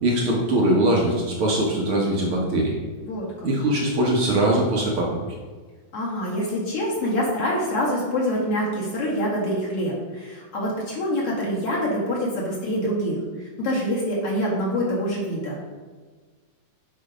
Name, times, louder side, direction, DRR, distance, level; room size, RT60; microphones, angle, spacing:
voice 1, 0.0-2.7 3.4-5.2, right 1 dB, 60° right, -2 dB, 1.5 m, -21 dB
voice 2, 3.1-3.5 5.9-15.6, equal, 45° left, -4 dB, 2.7 m, -26 dB
9.3 x 5.7 x 5.0 m, 1.4 s
omnidirectional pair, 4.0 m